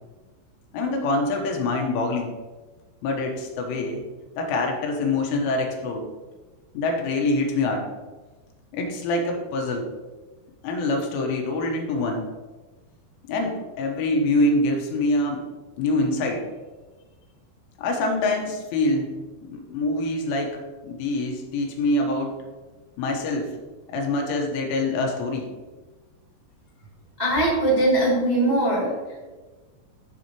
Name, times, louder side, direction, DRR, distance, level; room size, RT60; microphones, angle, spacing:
voice 1, 0.7-2.3 3.0-4.0 4.4-6.1 6.8-7.9 8.7-9.9 10.6-12.3 13.2-15.5 15.8-16.5 17.8-19.1 19.4-22.4 23.0-23.5 23.9-25.5, left 2 dB, 85° left, 2 dB, 3.6 m, -25 dB
voice 2, 27.2-28.9, right 1 dB, 30° right, -8 dB, 0.8 m, -21 dB
12.5 x 5.6 x 3.0 m, 1.3 s
omnidirectional pair, 5.5 m